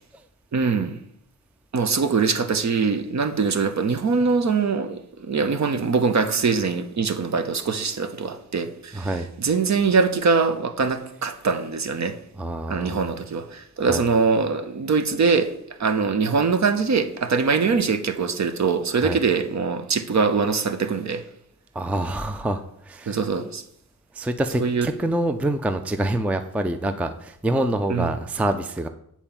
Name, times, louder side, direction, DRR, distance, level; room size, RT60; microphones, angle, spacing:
voice 1, 0.5-1.0 1.7-9.1 9.4-12.2 12.7-15.5 15.8-21.2 23.1-23.6 24.6-24.9 27.9-28.1, right 5 dB, 45° right, 0.9 m, -23 dB
voice 2, 8.9-9.3 12.4-13.1 13.9-14.0 19.0-19.2 21.7-23.2 24.1-28.9, right 1 dB, 5° right, 0.4 m, -26 dB
8.8 x 4.4 x 7.3 m
wide cardioid pair, 135°, 38 cm